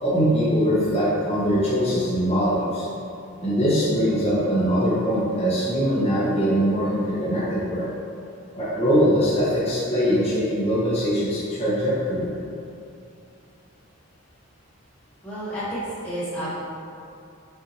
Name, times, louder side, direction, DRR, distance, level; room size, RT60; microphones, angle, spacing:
voice 1, 0.0-2.9 3.4-7.9 8.5-12.3, equal, 30° left, -11 dB, 0.9 m, -22 dB
voice 2, 15.2-16.5, right 1 dB, 10° left, -13 dB, 1.5 m, -30 dB
5.5 x 2.6 x 2.9 m, 2.6 s
head